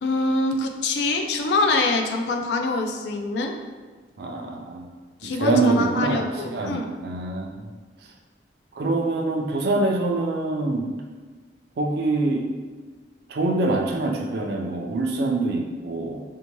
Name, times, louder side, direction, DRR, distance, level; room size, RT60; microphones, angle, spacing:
voice 1, 0.0-3.5 5.2-6.9, left 2 dB, 70° left, 4 dB, 0.3 m, -24 dB
voice 2, 4.2-4.9 5.2-7.7 8.8-10.9 11.8-12.5 13.3-16.2, right 2 dB, 65° right, 1 dB, 0.4 m, -25 dB
2.7 x 2.1 x 2.9 m, 1.4 s
head